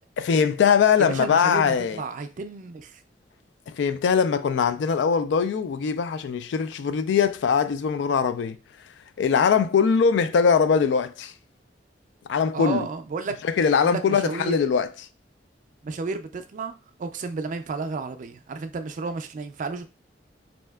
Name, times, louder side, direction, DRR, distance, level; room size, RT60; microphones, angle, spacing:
voice 1, 0.2-2.0 3.7-8.6 9.2-11.3 12.3-12.9 13.4-14.9, left 6 dB, 90° left, 0.3 m, -21 dB
voice 2, 1.0-3.0 12.5-13.4 13.8-14.6 15.8-19.9, right 4 dB, 45° right, 0.4 m, -32 dB
3.2 x 2.7 x 2.3 m
head